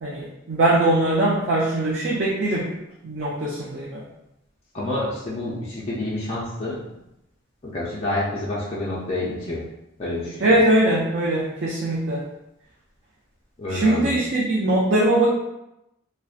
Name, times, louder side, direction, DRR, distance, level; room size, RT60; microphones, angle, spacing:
voice 1, 0.0-2.8 3.0-4.0 10.4-12.3 13.7-15.3, right 1 dB, 55° right, -6 dB, 0.4 m, -21 dB
voice 2, 4.7-6.8 7.6-9.6 10.0-10.5 13.6-14.1, left 1 dB, 30° left, -7 dB, 0.4 m, -28 dB
2.5 x 2.1 x 2.3 m, 0.87 s
head